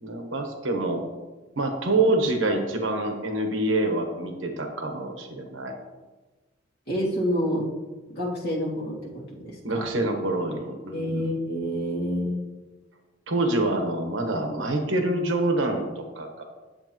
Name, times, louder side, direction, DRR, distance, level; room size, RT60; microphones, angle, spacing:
voice 1, 0.0-1.0 1.6-5.7 9.6-11.3 13.3-16.4, right 2 dB, 75° right, 4 dB, 1.1 m, -26 dB
voice 2, 6.9-7.7 8.1-9.9 10.9-12.4, equal, 55° left, -4 dB, 2.2 m, -28 dB
9.7 x 7.5 x 3.0 m, 1.2 s
head